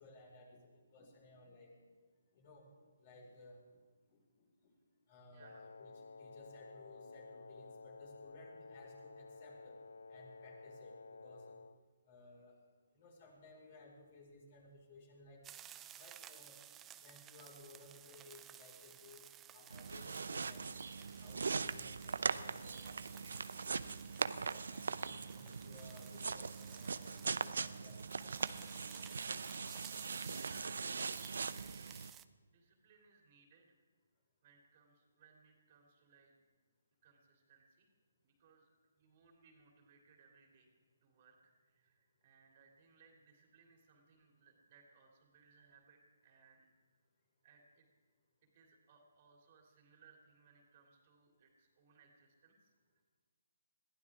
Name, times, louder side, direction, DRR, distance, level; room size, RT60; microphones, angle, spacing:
voice 1, 0.0-2.0 2.3-2.7 3.0-3.8 4.1-4.7 5.1-9.8 10.1-11.6 12.1-12.6 12.9-15.4 16.0-16.6 17.0-20.8 21.2-23.3 24.5-29.1, left 2 dB, 40° left, -1 dB, 5.2 m, -59 dB
voice 2, 5.3-5.7 30.4-33.8 34.4-36.4 37.0-37.9 38.2-38.7 39.0-40.7 41.0-46.7 47.4-47.9 48.5-53.0, right 5 dB, 40° right, 1 dB, 3.0 m, -67 dB
Wind instrument woodwind instrument, 5.4-11.8, left 4 dB, 80° left, 0.6 m, -53 dB
sound 1, 15.4-32.3, right 11 dB, 15° right, 0.5 m, -57 dB
sound 2, 19.7-32.1, right 5 dB, 70° right, 0.6 m, -41 dB
21.5 x 15.5 x 3.6 m, 1.4 s
figure-of-eight pair, 145°, 0 cm